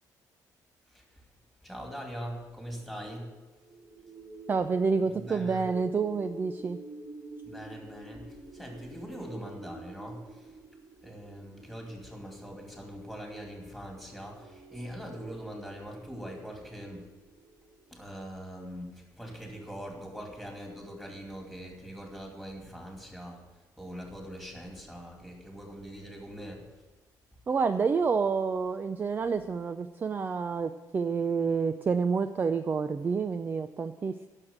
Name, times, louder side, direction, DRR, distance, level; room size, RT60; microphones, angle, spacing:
voice 1, 1.6-3.3 5.1-5.6 7.4-10.4 11.0-17.1 17.9-23.4 23.8-26.6, equal, ahead, 0 dB, 2.6 m, -42 dB
sound 1, 3.6-17.9, right 1 dB, 65° right, 3.9 m, -48 dB
voice 2, 4.5-6.8 27.5-34.3, right 5 dB, 25° right, 10 dB, 0.4 m, -28 dB
10.5 x 6.5 x 8.7 m, 1.2 s
cardioid pair, 135°, 7 cm